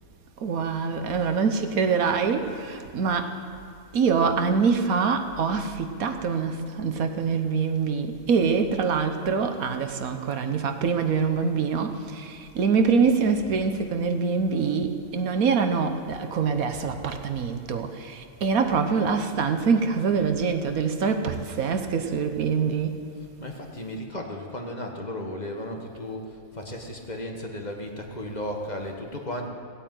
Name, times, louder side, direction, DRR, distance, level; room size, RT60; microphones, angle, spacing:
voice 1, 0.4-3.3 3.9-23.0, right 5 dB, 75° right, 7 dB, 1.5 m, -25 dB
voice 2, 16.7-17.2 23.1-29.5, left 1 dB, 30° left, 1 dB, 1.5 m, -35 dB
17.0 x 8.8 x 9.1 m, 2.3 s
omnidirectional pair, 1.5 m